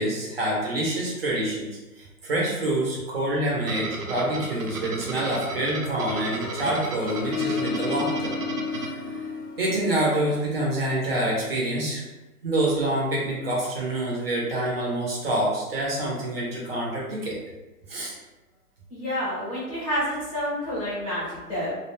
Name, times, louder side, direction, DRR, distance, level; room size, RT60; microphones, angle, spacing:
voice 1, 0.0-1.7 2.0-8.3 8.7-9.2 9.6-12.0 12.4-17.4 17.9-18.1, right 1 dB, 40° right, -4 dB, 0.7 m, -27 dB
sound 1, 3.6-9.7, right 3 dB, 85° right, 0.7 m, -34 dB
Harp, 5.3-10.7, left 5 dB, 85° left, 0.6 m, -33 dB
voice 2, 18.9-21.7, equal, 25° left, -9 dB, 0.7 m, -29 dB
2.3 x 2.2 x 3.1 m, 1.1 s
hypercardioid pair, 155°, 46 cm